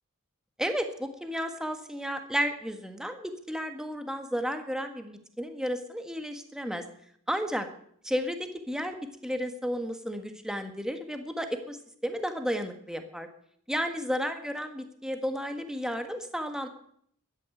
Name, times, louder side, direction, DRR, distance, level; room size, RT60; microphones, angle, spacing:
voice 1, 0.6-6.8 7.3-7.7 8.0-9.0 9.2-11.8 12.0-13.3 13.7-16.7, equal, 5° right, 6 dB, 1.5 m, -32 dB
13.5 x 10.0 x 9.0 m, 0.67 s
head